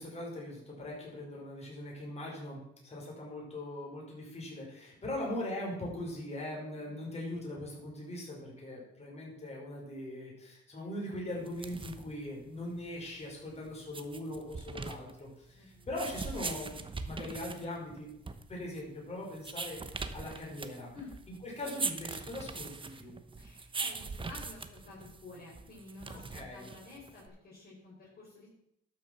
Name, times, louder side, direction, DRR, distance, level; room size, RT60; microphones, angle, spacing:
voice 1, 0.0-18.1 18.5-20.9 21.4-23.1 26.3-26.7, left 1 dB, 35° left, -3 dB, 5.0 m, -41 dB
sound 1, 11.4-27.3, right 4 dB, 25° right, 0.9 m, -42 dB
voice 2, 15.6-15.9 20.9-21.1 23.4-28.5, left 3 dB, 50° left, -5 dB, 4.1 m, -51 dB
12.0 x 6.3 x 5.9 m, 0.79 s
cardioid pair, 90°, 20 cm